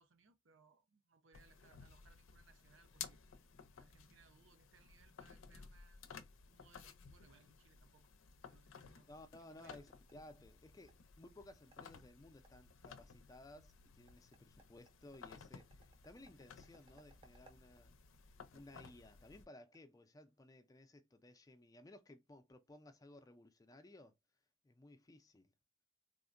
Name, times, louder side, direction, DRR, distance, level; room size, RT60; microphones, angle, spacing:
voice 1, 0.0-3.2 3.8-6.0 6.5-8.1 8.4-9.1 9.4-9.8, right 4 dB, 70° right, 0.6 m, -69 dB
sound 1, 1.3-19.4, left 6 dB, 80° left, 0.5 m, -57 dB
voice 2, 9.1-17.9 18.5-24.2 24.6-25.5, left 1 dB, 20° left, 0.4 m, -59 dB
sound 2, 9.2-20.5, right 3 dB, 30° right, 0.5 m, -73 dB
3.5 x 2.1 x 2.5 m
head